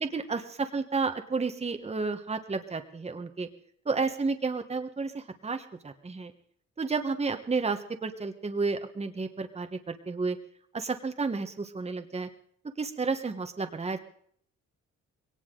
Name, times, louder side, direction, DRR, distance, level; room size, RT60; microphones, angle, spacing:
voice 1, 0.0-3.5 3.9-6.3 6.8-10.4 10.7-12.3 12.8-14.0, right 4 dB, 20° right, 7 dB, 1.3 m, -31 dB
21.0 x 18.0 x 3.9 m, 0.64 s
cardioid pair, 90°, 30 cm